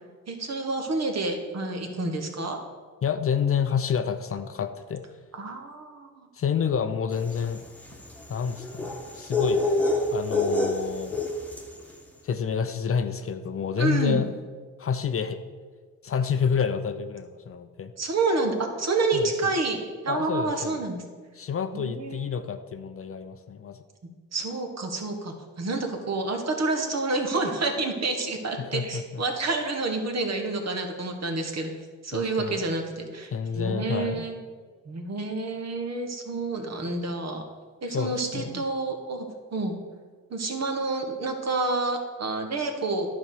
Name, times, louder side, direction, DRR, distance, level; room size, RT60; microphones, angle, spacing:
voice 1, 0.3-2.6 5.3-6.3 13.8-14.2 18.0-19.8 20.0-21.0 21.7-22.3 24.3-31.7 32.0-34.3 34.8-37.4 37.8-39.3 39.5-39.7 40.3-43.1, right 3 dB, 45° right, 4 dB, 1.7 m, -28 dB
voice 2, 3.0-5.0 6.3-7.6 8.3-9.6 10.1-11.2 12.2-14.3 14.8-15.4 16.0-17.9 19.1-19.5 20.1-20.8 21.3-23.8 28.6-29.2 32.1-32.6 33.3-34.3 37.9-38.6, left 7 dB, 40° left, 9 dB, 0.6 m, -29 dB
sound 1, 7.2-11.8, left 2 dB, 5° left, 1.5 m, -27 dB
11.0 x 4.3 x 6.7 m, 1.5 s
supercardioid pair, 65°, 35 cm